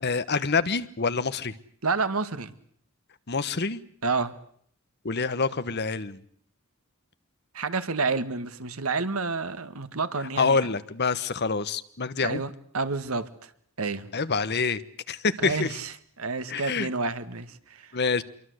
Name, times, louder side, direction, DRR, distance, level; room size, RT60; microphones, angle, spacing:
voice 1, 0.0-1.5 3.3-3.8 5.0-6.2 10.4-12.4 14.1-14.8 15.1-15.8 16.5-16.9 17.9-18.2, left 4 dB, 50° left, 13 dB, 1.2 m, -26 dB
voice 2, 1.8-2.5 4.0-4.3 7.5-10.6 12.2-13.5 13.8-14.1 15.4-15.9 16.2-17.9, right 4 dB, 80° right, 11 dB, 1.7 m, -29 dB
26.5 x 23.5 x 8.0 m, 0.64 s
head